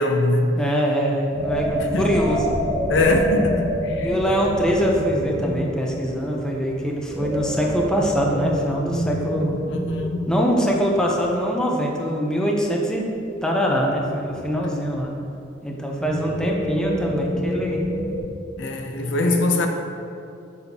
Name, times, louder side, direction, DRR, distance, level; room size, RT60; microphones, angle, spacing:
voice 1, 0.0-0.5 1.8-2.2 2.9-4.1 9.7-10.2 18.6-19.7, left 2 dB, 75° left, 4 dB, 0.6 m, -22 dB
voice 2, 0.5-2.6 4.0-9.6 10.3-13.1 13.4-15.1 15.6-17.8 18.9-19.4, equal, 5° left, -1 dB, 0.6 m, -23 dB
sound 1, 1.3-10.2 10.5-11.1 13.7-15.0 15.9-18.2, equal, 55° right, 1.3 m, -27 dB
6.7 x 6.3 x 2.8 m, 2.6 s
head